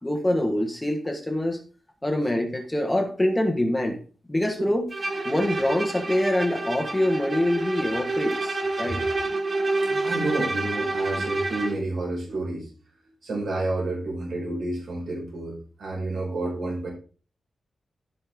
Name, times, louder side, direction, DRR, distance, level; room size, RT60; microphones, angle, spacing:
voice 1, 0.0-1.6 2.0-4.0 4.3-4.9 5.2-9.0, left 1 dB, 10° left, 3 dB, 1.5 m, -25 dB
Bowed string instrument, 4.9-11.9, right 2 dB, 30° right, 1.2 m, -28 dB
voice 2, 10.0-12.7 13.2-16.9, right 2 dB, 70° right, -2 dB, 4.6 m, -30 dB
15.5 x 5.5 x 3.6 m, 0.38 s
wide cardioid pair, 140°, 0 cm